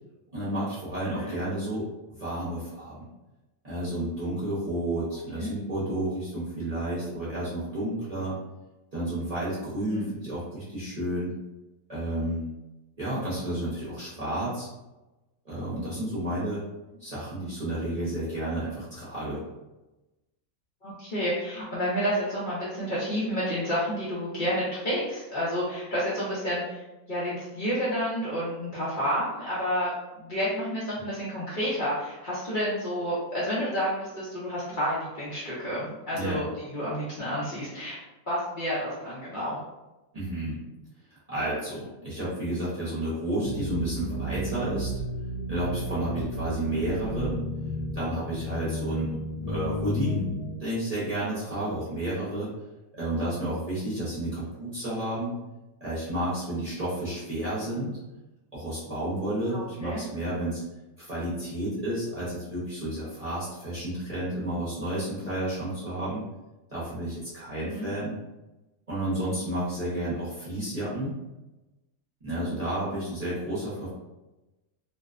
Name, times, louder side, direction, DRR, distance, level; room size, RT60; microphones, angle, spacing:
voice 1, 0.3-1.8 2.2-3.0 3.6-8.3 8.9-11.3 11.9-12.5 13.0-14.7 15.4-16.6 17.0-19.4 36.1-36.4 40.1-40.6 41.3-44.9 45.5-47.4 47.9-49.2 49.5-50.3 50.6-52.5 52.9-55.3 55.8-57.9 58.5-60.6 61.0-66.2 66.7-68.1 68.9-71.1 72.2-73.9, right 1 dB, 35° right, -10 dB, 0.7 m, -31 dB
voice 2, 20.8-29.9 30.2-36.5 36.7-38.0 38.3-39.6 59.5-60.0 67.6-67.9, equal, 50° left, -10 dB, 0.6 m, -30 dB
sound 1, 43.4-50.6, equal, 85° left, 1.0 m, -33 dB
2.6 x 2.1 x 2.3 m, 1.0 s
omnidirectional pair, 1.5 m